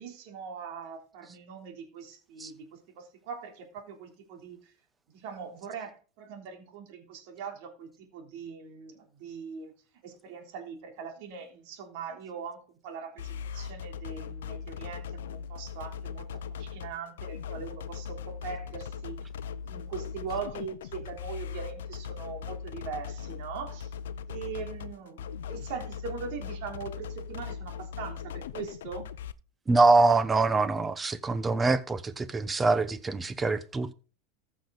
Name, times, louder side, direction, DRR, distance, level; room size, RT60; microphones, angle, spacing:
voice 1, 0.0-4.7 5.1-9.7 10.0-16.3 16.6-19.3 19.7-23.9 24.3-29.1, right 6 dB, 65° right, 3.4 m, -41 dB
sound 1, 13.2-29.3, left 7 dB, 85° left, 0.6 m, -39 dB
voice 2, 29.7-33.9, right 3 dB, 15° right, 1.0 m, -24 dB
14.5 x 6.3 x 4.1 m
supercardioid pair, 115°, 0 cm